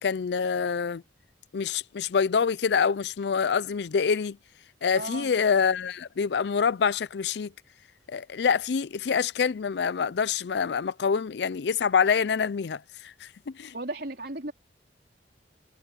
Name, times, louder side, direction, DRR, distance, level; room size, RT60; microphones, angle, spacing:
voice 1, 0.0-1.0 1.5-4.4 4.8-7.5 8.1-13.3 13.6-13.7, left 6 dB, 65° left, 0.4 m, -26 dB
voice 2, 4.9-5.3 13.7-14.5, right 2 dB, 60° right, 4.1 m, -35 dB
head